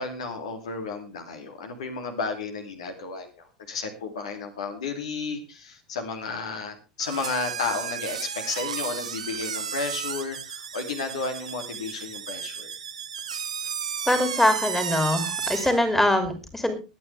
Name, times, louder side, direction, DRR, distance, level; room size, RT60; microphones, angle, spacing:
voice 1, 0.0-3.3 3.7-12.7, left 4 dB, 65° left, 5 dB, 2.7 m, -32 dB
sound 1, 7.0-15.8, right 7 dB, 75° right, 1.1 m, -33 dB
voice 2, 14.1-16.7, left 1 dB, 5° left, 8 dB, 2.8 m, -23 dB
23.0 x 9.2 x 3.4 m, 0.30 s
figure-of-eight pair, 80°, 4 cm